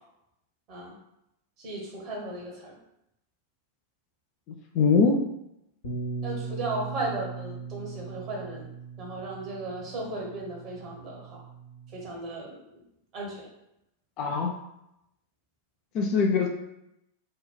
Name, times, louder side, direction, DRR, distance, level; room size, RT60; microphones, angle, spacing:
voice 1, 1.6-2.7 6.2-8.7 9.0-11.4 11.9-12.8 13.1-13.5, right 2 dB, 35° right, -2 dB, 0.8 m, -36 dB
voice 2, 4.7-5.2 14.2-14.5 15.9-16.5, left 5 dB, 40° left, 2 dB, 0.3 m, -22 dB
Bass guitar, 5.8-12.1, right 4 dB, 65° left, 0.7 m, -39 dB
2.8 x 2.2 x 2.2 m, 0.85 s
figure-of-eight pair, 90°, 0 cm